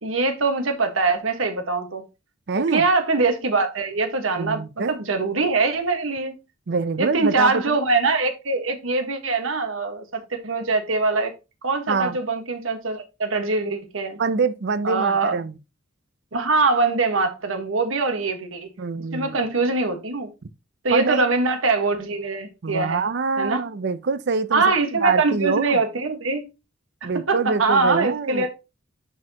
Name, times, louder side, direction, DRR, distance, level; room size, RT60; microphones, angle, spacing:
voice 1, 0.0-2.0 2.5-6.3 7.0-11.3 11.6-14.2 14.8-15.4 16.3-18.7 19.1-20.3 20.8-23.0 23.4-23.6 24.5-26.4 27.0-28.5, right 3 dB, 80° right, 1.5 m, -23 dB
voice 2, 2.5-2.8 4.4-5.0 6.7-7.8 11.9-12.2 14.2-15.6 18.8-19.4 20.9-21.4 22.6-24.6 24.9-25.8 27.0-28.5, right 4 dB, 60° right, 0.6 m, -25 dB
11.0 x 4.3 x 2.9 m
head